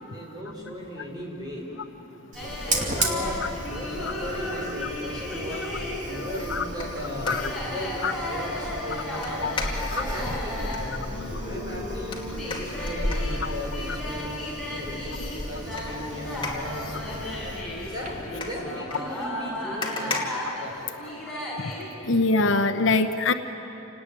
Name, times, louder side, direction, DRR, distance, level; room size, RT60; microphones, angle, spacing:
voice 1, 0.1-1.7 2.4-3.4 3.7-5.7 6.0-9.6 9.9-12.2 12.4-16.9 17.9-20.2 20.6-20.9, left 1 dB, 20° right, -2 dB, 5.0 m, -37 dB
Fire, 2.3-18.4, right 1 dB, 35° right, 2.6 m, -35 dB
sound 1, 2.4-21.9, left 1 dB, ahead, 5.8 m, -35 dB
sound 2, 6.1-7.9 9.2-10.9 12.1-14.6 15.1-21.3 21.7-21.8, left 3 dB, 25° left, 2.5 m, -38 dB
voice 2, 22.0-23.3, left 3 dB, 60° left, 8 dB, 0.9 m, -23 dB
28.5 x 18.5 x 9.8 m, 2.9 s
head